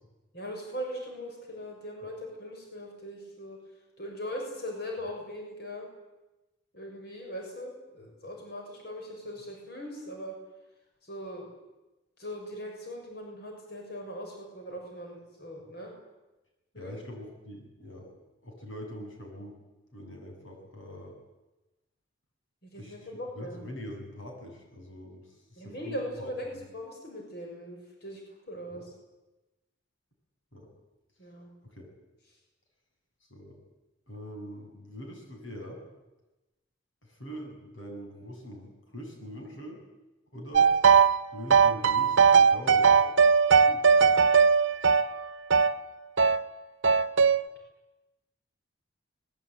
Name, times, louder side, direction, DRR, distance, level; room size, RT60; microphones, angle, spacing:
voice 1, 0.3-3.6 4.0-5.9 6.7-10.4 11.0-11.5 12.2-15.9 16.7-16.9 22.6-23.6 25.6-28.2 28.5-28.9 31.2-31.5, equal, 55° left, 1 dB, 6.6 m, -40 dB
voice 2, 16.8-18.1 18.4-19.6 19.9-21.1 22.8-23.1 23.4-25.2 25.5-26.3 28.7-28.8 30.5-30.7 31.7-31.9 33.3-33.6 34.1-35.8 37.0-39.8 40.3-40.7 41.3-43.1 43.6-43.8, equal, 80° left, 2 dB, 7.6 m, -43 dB
sound 1, 40.5-41.2 41.5-45.8 46.2-46.4 46.8-47.4, right 6 dB, 75° right, 1.0 m, -20 dB
24.5 x 21.5 x 9.3 m, 1.1 s
head